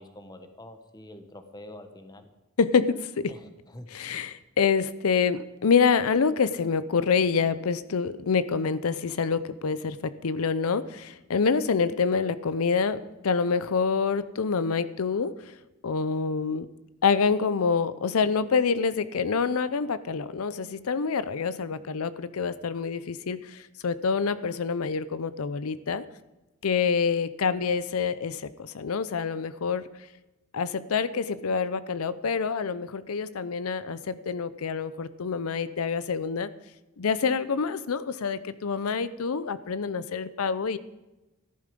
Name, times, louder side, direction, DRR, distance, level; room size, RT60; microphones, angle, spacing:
voice 1, 0.0-2.3 3.3-3.9, left 1 dB, 20° left, 8 dB, 1.1 m, -46 dB
voice 2, 2.6-3.3 3.9-15.6 15.8-16.7 17.0-26.0 26.6-29.9 30.5-36.5 37.0-40.8, left 5 dB, 85° left, 15 dB, 0.6 m, -27 dB
14.0 x 11.5 x 5.2 m, 1.0 s
head